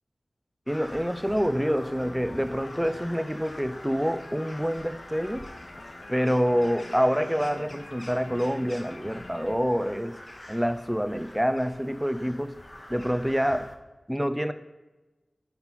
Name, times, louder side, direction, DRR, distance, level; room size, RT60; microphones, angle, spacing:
Crow, 0.7-13.8, left 1 dB, 30° left, 1.0 m, -46 dB
voice 1, 0.7-5.4 6.1-10.1 10.5-12.5 12.9-13.7 14.1-14.5, equal, 5° right, 11 dB, 0.5 m, -27 dB
sound 1, 1.5-9.6, left 2 dB, 80° left, 0.6 m, -46 dB
9.5 x 3.9 x 4.4 m, 1.1 s
wide cardioid pair, 65°, 0 cm